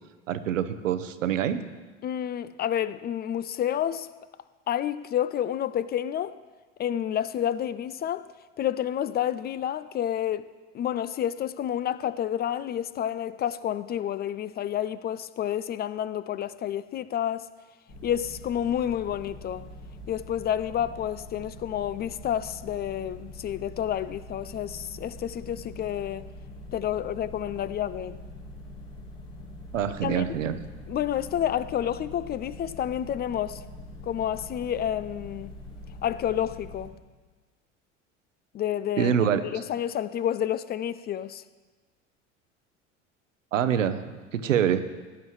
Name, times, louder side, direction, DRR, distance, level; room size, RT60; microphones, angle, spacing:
voice 1, 0.3-1.7 29.7-30.6 39.0-39.4 43.5-44.0 44.3-44.8, right 9 dB, 80° right, 0.9 m, -25 dB
voice 2, 2.0-4.1 4.7-6.4 6.8-8.3 8.6-17.5 18.0-19.7 20.1-26.3 26.7-28.2 30.0-30.4 30.9-33.6 34.0-35.5 36.0-36.9 38.5-39.1 39.5-41.4, left 10 dB, 25° left, 0.4 m, -29 dB
sound 1, 17.9-36.9, left 1 dB, 70° left, 4.4 m, -44 dB
17.0 x 10.5 x 3.2 m
hypercardioid pair, 70°, 38 cm